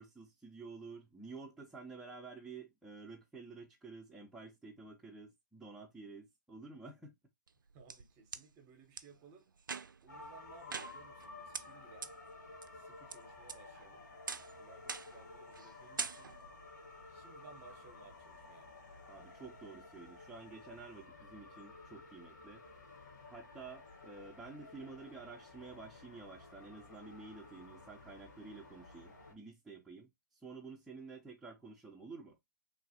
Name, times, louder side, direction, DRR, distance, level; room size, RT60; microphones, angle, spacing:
voice 1, 0.0-7.2 19.1-22.6 23.3-32.4, right 4 dB, 5° right, 0.5 m, -51 dB
sound 1, 7.5-8.4 9.0-9.1 9.6-10.1 10.7-11.3 11.5-11.6 12.0-12.1 12.6-13.1 13.5-13.9 14.3-14.5 14.9-15.2 15.5-15.7 16.0-16.5, right 5 dB, 80° right, 0.4 m, -42 dB
voice 2, 7.7-9.5 10.0-12.1 12.7-14.1 14.5-16.3 17.1-18.7, right 4 dB, 25° right, 0.8 m, -60 dB
sound 2, 10.1-29.3, left 3 dB, 65° left, 1.4 m, -54 dB
3.1 x 2.3 x 2.7 m
figure-of-eight pair, 135°, 11 cm